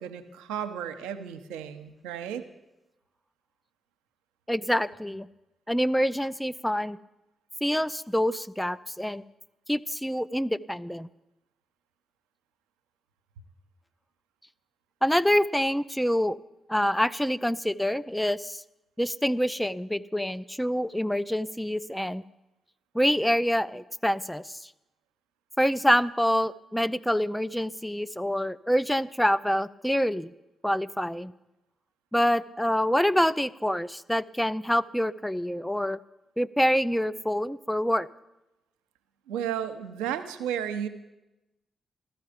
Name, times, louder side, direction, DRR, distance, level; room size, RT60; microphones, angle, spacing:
voice 1, 0.0-2.4 39.3-40.9, right 9 dB, 90° right, 9 dB, 0.8 m, -33 dB
voice 2, 4.5-5.3 5.7-7.0 7.6-9.2 9.7-11.1 15.0-16.4 16.7-18.6 19.0-22.2 22.9-24.7 25.6-30.3 30.6-31.3 32.1-36.0 36.4-38.1, equal, 5° left, 16 dB, 0.6 m, -26 dB
14.5 x 13.5 x 5.1 m, 0.96 s
hypercardioid pair, 45°, 0 cm